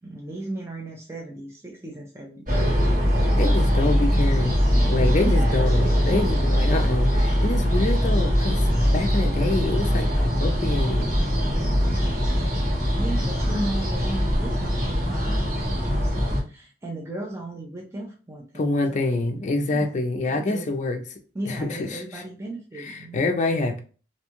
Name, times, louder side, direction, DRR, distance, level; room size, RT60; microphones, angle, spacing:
voice 1, 0.0-2.6 4.8-5.4 8.7-8.8 13.0-19.0 19.7-20.0 20.3-20.7 21.3-23.5, right 1 dB, 15° right, 0.4 m, -36 dB
sound 1, 2.5-16.4, equal, 50° right, 1.4 m, -22 dB
voice 2, 3.2-4.6 4.9-11.1 18.5-21.0 21.4-22.2 22.8-23.8, left 2 dB, 40° left, 0.5 m, -26 dB
2.6 x 2.3 x 2.9 m
head